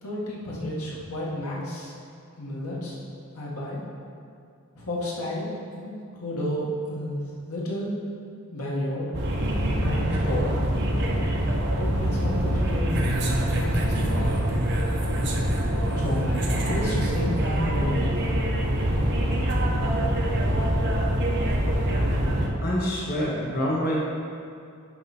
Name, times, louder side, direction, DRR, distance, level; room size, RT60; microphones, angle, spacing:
voice 1, 0.0-1.9 2.4-3.0 3.3-3.8 4.8-7.2 7.5-7.9 8.5-9.1 9.7-10.4 11.8-13.1 13.5-14.3 15.9-18.3, left 1 dB, 75° left, -5 dB, 1.9 m, -31 dB
sound 1, 9.1-22.5, right 1 dB, 55° right, 1.1 m, -24 dB
voice 2, 22.6-24.0, equal, 45° left, -6 dB, 1.4 m, -26 dB
11.0 x 5.0 x 4.4 m, 2.4 s
head